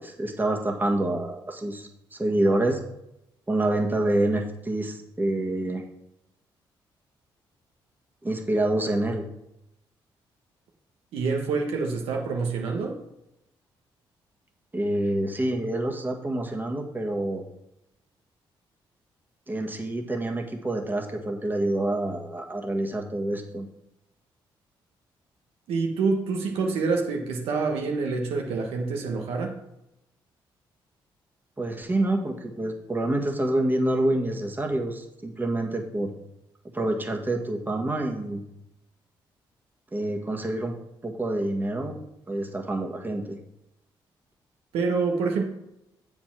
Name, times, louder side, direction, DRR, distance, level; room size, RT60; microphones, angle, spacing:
voice 1, 0.0-2.8 3.5-5.8 8.2-9.2 14.7-17.4 19.5-23.7 31.6-36.1 36.7-38.4 39.9-40.7 41.0-42.0 42.3-43.4, right 1 dB, 20° right, 2 dB, 1.5 m, -27 dB
voice 2, 11.1-13.0 25.7-29.6 44.7-45.4, right 4 dB, 85° right, 2 dB, 1.3 m, -26 dB
7.3 x 4.8 x 6.0 m, 0.84 s
supercardioid pair, 65°, 10 cm